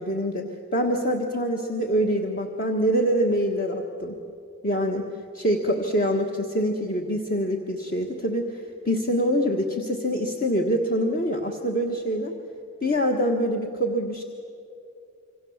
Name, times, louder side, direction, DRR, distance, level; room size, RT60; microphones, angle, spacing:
voice 1, 0.0-4.1 4.6-5.1 5.3-12.3 12.8-14.2, equal, 40° left, 2 dB, 1.5 m, -25 dB
27.0 x 24.5 x 7.3 m, 2.6 s
head